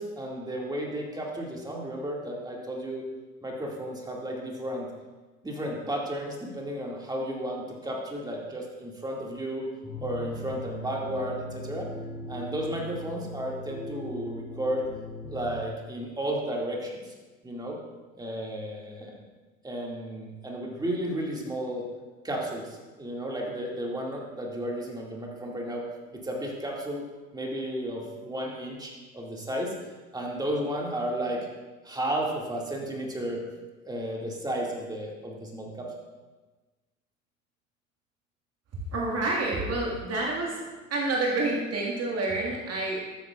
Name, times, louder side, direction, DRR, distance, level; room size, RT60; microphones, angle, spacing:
voice 1, 0.0-3.1 3.4-4.9 5.4-9.7 10.0-11.9 12.3-14.9 15.3-17.1 17.4-17.8 18.2-19.2 19.6-21.8 22.2-25.9 26.1-27.1 27.3-29.7 30.1-31.5 31.8-33.4 33.9-35.9, right 1 dB, 10° right, -2 dB, 2.3 m, -33 dB
sound 1, 9.8-15.6, left 1 dB, 15° left, 2.6 m, -39 dB
voice 2, 38.9-40.6 40.9-43.0, right 2 dB, 40° right, -2 dB, 1.9 m, -28 dB
13.0 x 8.8 x 2.5 m, 1.2 s
figure-of-eight pair, 65°, 40 cm